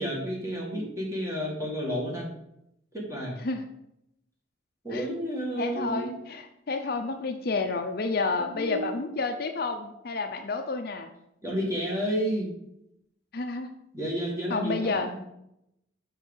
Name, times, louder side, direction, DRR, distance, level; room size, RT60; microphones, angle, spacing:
voice 1, 0.0-2.3 2.9-3.4 4.8-6.1 8.2-9.1 11.4-12.5 13.9-15.2, equal, 15° right, -2 dB, 1.8 m, -31 dB
voice 2, 5.6-11.1 13.3-13.7 14.5-15.2, left 3 dB, 50° left, 6 dB, 0.6 m, -30 dB
6.4 x 4.7 x 5.2 m, 0.81 s
head